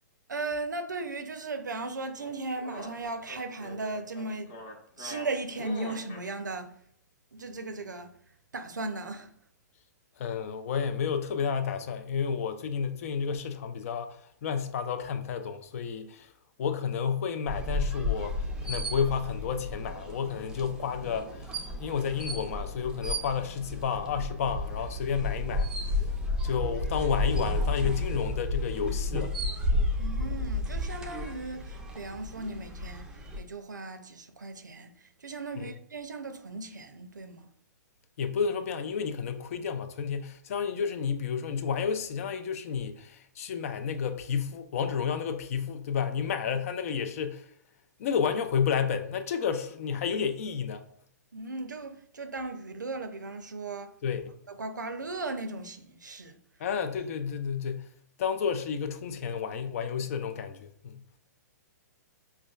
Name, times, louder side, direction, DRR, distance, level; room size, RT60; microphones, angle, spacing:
voice 1, 0.3-4.5 5.0-6.7 7.3-8.1 8.5-9.3 30.0-37.5 51.3-53.9 54.5-56.4, right 3 dB, 85° right, 0.5 m, -37 dB
sound 1, 2.2-6.3, left 2 dB, 35° left, 0.9 m, -44 dB
voice 2, 10.2-16.3 16.6-25.7 26.4-29.4 29.7-29.9 35.6-35.7 38.2-47.5 48.0-50.9 54.0-54.3 56.6-57.9 58.2-61.0, left 6 dB, 50° left, 0.4 m, -31 dB
sound 2, 17.5-33.4, left 1 dB, 10° right, 0.5 m, -32 dB
4.9 x 2.3 x 2.3 m
figure-of-eight pair, 120°, 10 cm